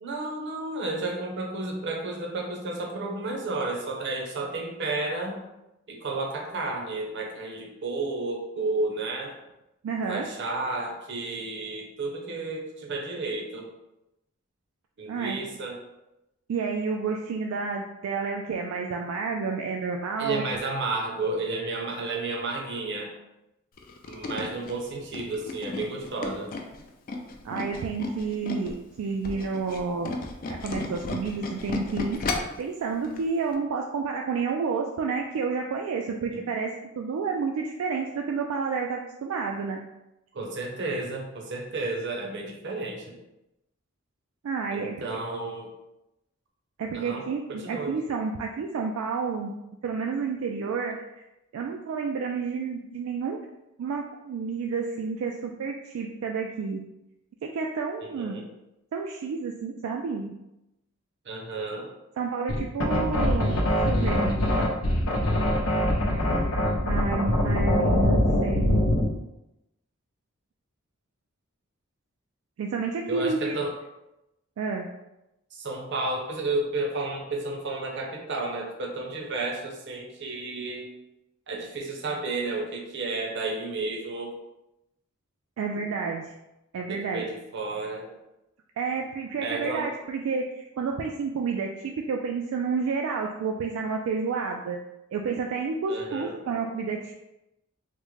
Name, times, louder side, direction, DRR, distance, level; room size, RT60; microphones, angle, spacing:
voice 1, 0.0-5.4 5.9-9.3 10.1-13.7 15.0-15.8 20.2-23.1 24.1-26.5 36.3-36.4 40.3-43.2 44.7-45.7 46.9-47.2 47.5-48.0 58.0-58.4 61.3-61.9 73.1-73.7 75.5-80.9 81.5-84.3 86.9-88.1 89.4-89.9 95.9-96.4, right 2 dB, 60° right, 0 dB, 0.7 m, -32 dB
voice 2, 9.8-10.3 15.1-15.4 16.5-20.4 27.4-30.2 30.5-39.8 44.4-45.1 46.8-49.6 49.8-51.0 51.5-53.4 53.8-56.8 57.4-58.4 58.9-60.3 62.2-64.4 65.6-65.7 66.8-68.8 72.6-73.5 74.6-74.9 85.6-86.3 86.7-87.3 88.8-94.8 95.1-97.1, right 5 dB, 80° right, 3 dB, 0.3 m, -30 dB
Tools, 23.8-28.8 29.1-32.6 33.0-33.2 33.5-33.6, left 3 dB, 45° left, 0.4 m, -34 dB
sound 1, 62.5-69.1, left 1 dB, 85° left, 0.6 m, -23 dB
3.6 x 2.1 x 3.1 m, 0.91 s
head